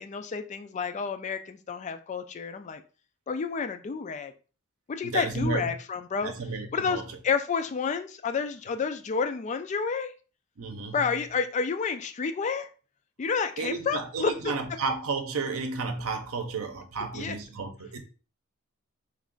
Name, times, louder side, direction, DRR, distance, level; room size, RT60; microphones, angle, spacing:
voice 1, 0.0-2.8 3.3-4.3 4.9-6.3 6.7-10.1 10.9-12.7 13.2-14.5 17.1-17.4, left 5 dB, 35° left, 0.3 m, -30 dB
voice 2, 5.0-5.7 6.2-7.0 10.6-11.1 13.6-18.0, right 4 dB, 75° right, 0.7 m, -32 dB
3.2 x 2.4 x 3.7 m
head